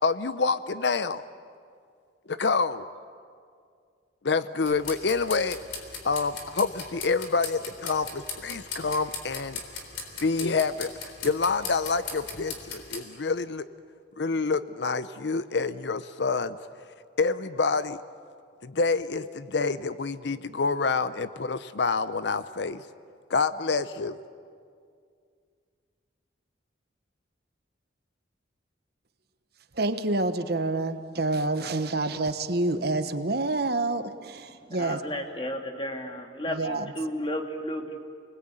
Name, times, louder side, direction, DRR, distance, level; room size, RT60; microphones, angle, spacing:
voice 1, 0.0-1.2 2.3-2.9 4.2-5.6 6.0-9.6 10.2-10.9 11.2-13.6 14.2-16.6 17.2-18.0 18.6-22.8 23.3-24.2, left 4 dB, 65° left, 13 dB, 0.7 m, -27 dB
sound 1, 4.7-13.0, left 5 dB, 90° left, 3.8 m, -39 dB
voice 2, 29.8-35.1 36.5-36.9, right 2 dB, 55° right, 9 dB, 1.2 m, -28 dB
voice 3, 34.7-38.0, equal, 25° left, 3 dB, 2.2 m, -33 dB
30.0 x 20.5 x 9.0 m, 2.2 s
head